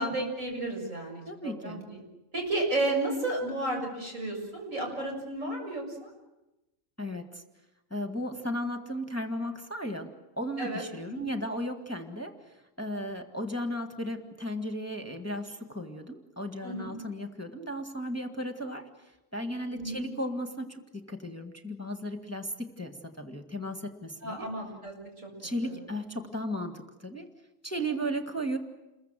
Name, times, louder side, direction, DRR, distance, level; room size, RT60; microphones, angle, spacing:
voice 1, 0.0-1.8 2.3-6.1 10.6-11.2 16.6-16.9 19.7-20.1 24.2-25.3 25.6-25.8, right 2 dB, 80° right, 0 dB, 7.5 m, -33 dB
voice 2, 1.3-1.8 7.0-7.4 7.9-10.1 10.4-20.8 21.1-24.5 25.4-27.3 27.6-28.6, equal, 10° left, 4 dB, 1.7 m, -35 dB
29.0 x 22.0 x 7.6 m, 1.0 s
omnidirectional pair, 1.3 m